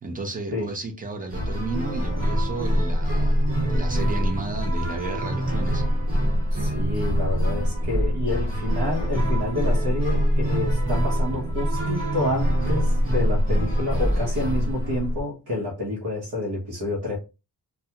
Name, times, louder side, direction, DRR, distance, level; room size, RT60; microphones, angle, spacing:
voice 1, 0.0-5.8, right 2 dB, 20° right, 0.5 m, -33 dB
sound 1, 1.3-15.2, equal, 55° right, 1.4 m, -24 dB
voice 2, 6.5-17.2, left 2 dB, 70° right, 0.9 m, -29 dB
2.3 x 2.2 x 2.8 m
wide cardioid pair, 145°, 40 cm